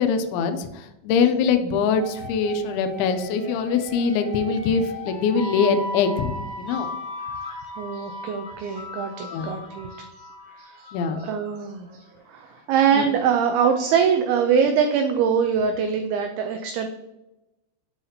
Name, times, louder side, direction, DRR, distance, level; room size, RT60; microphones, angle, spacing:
voice 1, 0.0-6.9 9.3-9.5 10.9-11.2 12.9-13.1, left 6 dB, 85° left, 8 dB, 2.2 m, -23 dB
sound 1, 1.9-11.6, left 1 dB, 25° right, 1.2 m, -37 dB
voice 2, 7.7-10.0 10.6-12.0 12.3-16.9, right 7 dB, 85° right, 6 dB, 2.2 m, -23 dB
7.4 x 5.7 x 2.8 m, 0.94 s
omnidirectional pair, 5.0 m